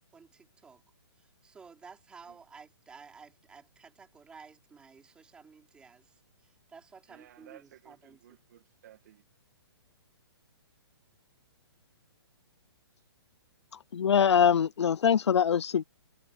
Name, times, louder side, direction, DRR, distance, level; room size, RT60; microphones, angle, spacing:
voice 1, 0.1-0.8 1.2-8.2, right 5 dB, 5° right, 4.8 m, -53 dB
voice 2, 7.1-9.2, right 12 dB, 40° right, 1.9 m, -56 dB
voice 3, 13.9-15.8, left 8 dB, 90° left, 0.6 m, -23 dB
hypercardioid pair, 170°, 14 cm